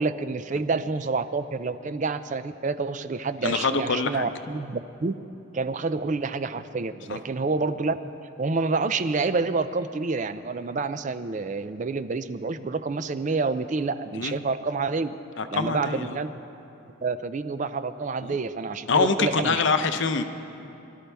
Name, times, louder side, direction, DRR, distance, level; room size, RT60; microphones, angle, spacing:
voice 1, 0.0-5.2 5.5-8.1 8.4-15.2 15.5-16.4 17.0-19.6, right 4 dB, 35° right, 12 dB, 0.4 m, -28 dB
voice 2, 3.4-4.3 7.1-7.2 14.2-14.3 15.4-16.2 18.2-18.4 18.9-20.2, left 4 dB, 55° left, 9 dB, 0.7 m, -25 dB
23.5 x 13.0 x 3.4 m, 2.8 s
head